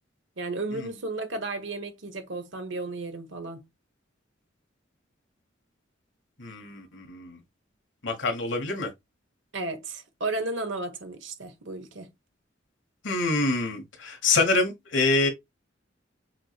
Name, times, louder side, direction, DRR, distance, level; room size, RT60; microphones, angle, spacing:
voice 1, 0.4-3.6 9.5-12.1, right 2 dB, 75° right, 1.2 m, -33 dB
voice 2, 6.4-7.4 8.0-8.9 13.0-15.3, left 3 dB, 70° left, 1.3 m, -26 dB
5.8 x 3.1 x 2.4 m
head